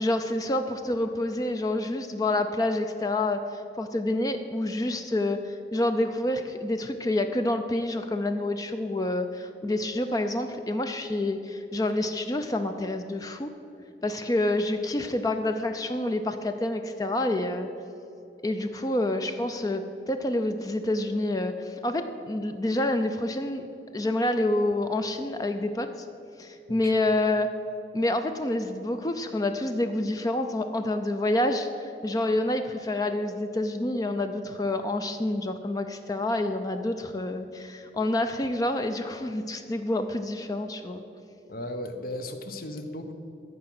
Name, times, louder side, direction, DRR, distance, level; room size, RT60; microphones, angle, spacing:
voice 1, 0.0-13.5 14.0-17.7 18.4-23.6 23.9-25.9 26.4-27.5 27.9-41.0, left 1 dB, 20° left, 7 dB, 0.4 m, -28 dB
voice 2, 41.5-43.1, left 1 dB, 55° left, 7 dB, 0.9 m, -36 dB
13.5 x 4.8 x 7.7 m, 2.8 s
head